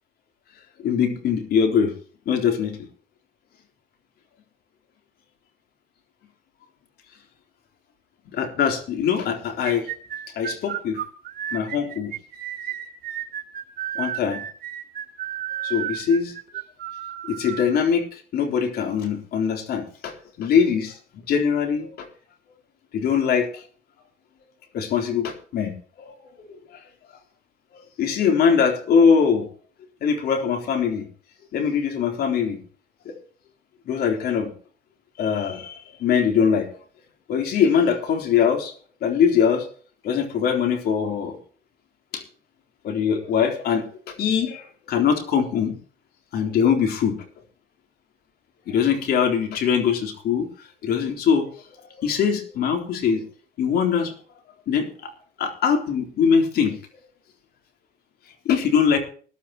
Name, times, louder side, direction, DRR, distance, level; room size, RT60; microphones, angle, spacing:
voice 1, 0.8-1.9 2.3-2.8 8.3-9.9 10.4-11.0 11.5-12.1 14.0-14.4 15.6-16.3 17.2-21.0 21.3-22.1 22.9-23.6 24.7-25.7 26.0-26.5 27.7-29.5 30.0-31.1 31.5-32.6 33.1-33.2 33.9-34.5 35.2-36.7 37.3-38.7 39.0-39.7 40.0-41.4 42.1-42.2 42.8-45.8 46.3-47.2 48.7-50.5 50.8-51.5 52.0-53.2 53.6-54.1 54.7-55.1 55.4-56.8 58.5-59.0, left 7 dB, 70° left, 6 dB, 3.7 m, -22 dB
sound 1, 9.6-17.7, right 11 dB, 60° right, 3.0 m, -32 dB
20.0 x 12.0 x 3.0 m, 0.43 s
cardioid pair, 110°, 17 cm